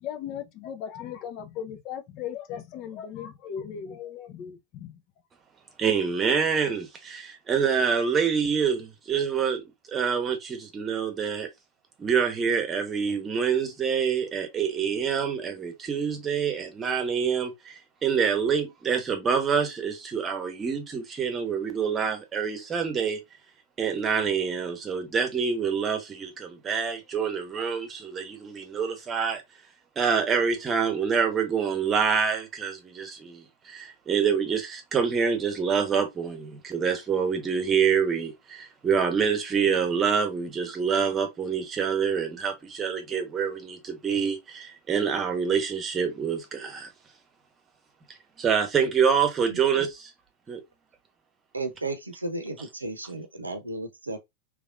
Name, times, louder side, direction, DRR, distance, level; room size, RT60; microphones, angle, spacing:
voice 1, 0.0-5.0, left 9 dB, 40° left, 0.7 m, -37 dB
voice 2, 5.8-11.5 12.0-23.2 23.8-29.4 30.0-46.9 48.4-50.1 50.5-50.6, right 6 dB, 20° right, 1.0 m, -26 dB
voice 3, 51.5-54.2, right 2 dB, 80° right, 0.7 m, -34 dB
3.4 x 3.3 x 2.4 m
figure-of-eight pair, 90°, 0 cm